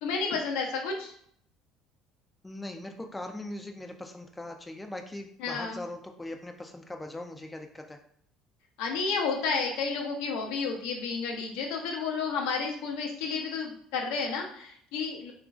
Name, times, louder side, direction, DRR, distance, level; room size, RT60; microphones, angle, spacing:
voice 1, 0.0-1.1 5.4-5.8 8.8-15.3, left 5 dB, 80° left, 1 dB, 0.6 m, -31 dB
voice 2, 2.4-8.0, left 1 dB, 10° left, 4 dB, 0.3 m, -40 dB
2.9 x 2.4 x 2.3 m, 0.64 s
supercardioid pair, 85°, 0 cm